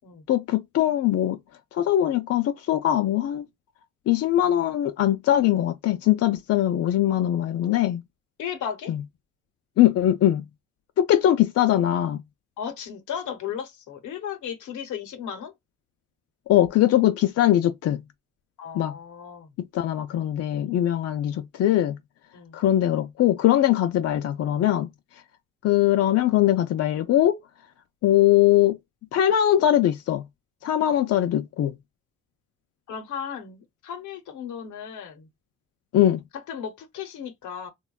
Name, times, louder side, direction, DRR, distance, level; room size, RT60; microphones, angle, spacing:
voice 1, 0.3-1.4 1.7-3.4 4.1-8.0 8.9-9.0 9.8-10.4 11.0-12.2 16.5-18.0 18.7-18.9 19.7-22.0 22.5-24.9 25.6-27.4 28.0-28.8 29.1-30.2 30.6-31.7 35.9-36.2, left 12 dB, 55° left, 0.4 m, -21 dB
voice 2, 8.4-8.9 12.6-15.5 18.6-19.5 22.3-22.6 32.9-35.3 36.3-37.7, left 8 dB, 75° left, 0.8 m, -35 dB
3.4 x 2.2 x 2.2 m
cardioid pair, 90°, 30 cm